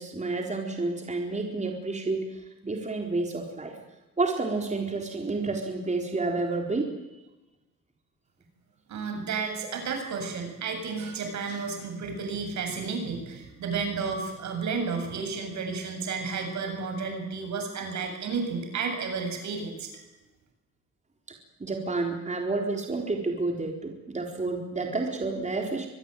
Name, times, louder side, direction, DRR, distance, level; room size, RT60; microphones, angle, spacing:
voice 1, 0.0-3.8 4.2-6.9 21.6-25.9, right 3 dB, 25° right, 2 dB, 4.2 m, -30 dB
voice 2, 8.9-19.9, right 5 dB, 70° right, 5 dB, 7.9 m, -32 dB
24.5 x 20.5 x 9.3 m, 1.0 s
cardioid pair, 90°, 30 cm